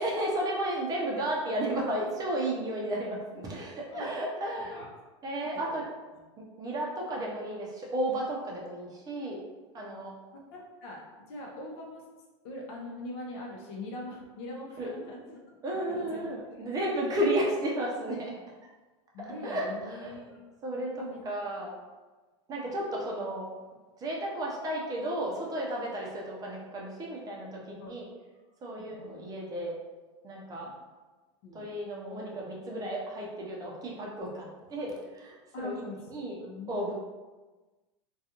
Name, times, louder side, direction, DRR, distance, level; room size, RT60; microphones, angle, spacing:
voice 1, 0.0-4.8 5.2-5.8 6.4-9.4 9.7-10.2 14.8-14.9 15.6-18.3 19.4-20.1 20.6-21.7 22.5-23.5 24.0-28.1 28.6-29.8 30.2-30.7 31.5-35.8 36.1-36.4 36.7-36.9, right 1 dB, 25° right, -3 dB, 0.6 m, -33 dB
voice 2, 4.6-4.9 5.3-5.5 9.8-10.0 10.5-11.0 11.3-12.0 12.4-16.6 19.1-20.4 21.0-21.2 27.8-27.9 28.7-29.2 30.5-30.7 31.4-31.7 35.5-36.0 36.4-36.8, left 2 dB, 60° left, -1 dB, 0.7 m, -42 dB
2.5 x 2.3 x 2.8 m, 1.2 s
supercardioid pair, 125°, 16 cm